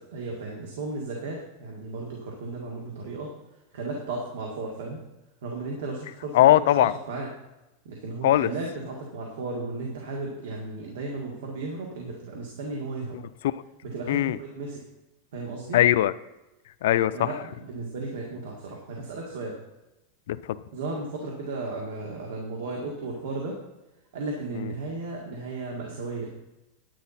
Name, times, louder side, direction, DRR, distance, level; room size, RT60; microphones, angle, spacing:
voice 1, 0.0-3.3 3.7-5.0 5.4-7.3 7.9-13.2 13.8-14.8 15.3-15.8 17.1-19.5 20.7-23.6 24.1-26.3, right 3 dB, 80° right, -1 dB, 1.9 m, -34 dB
voice 2, 6.3-6.9 8.2-8.5 13.1-13.2 14.1-14.4 15.7-16.1 16.8-17.3 20.3-20.6 24.5-24.7, left 13 dB, 75° left, 15 dB, 0.4 m, -20 dB
10.0 x 9.6 x 4.2 m, 0.99 s
supercardioid pair, 160°, 0 cm